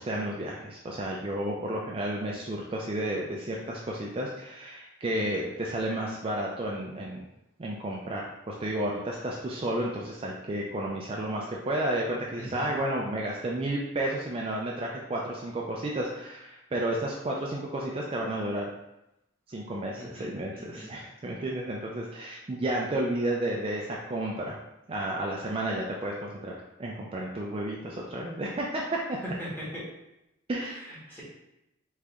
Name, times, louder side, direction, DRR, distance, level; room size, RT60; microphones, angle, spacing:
voice 1, 0.0-7.2 7.6-18.7 19.5-24.6 24.9-26.5 26.8-29.2 30.5-30.8, right 1 dB, 30° right, -2 dB, 0.4 m, -32 dB
voice 2, 12.4-12.7 19.9-20.9 29.2-29.9 30.6-31.2, equal, 10° left, -8 dB, 1.5 m, -40 dB
3.8 x 3.2 x 3.5 m, 0.88 s
head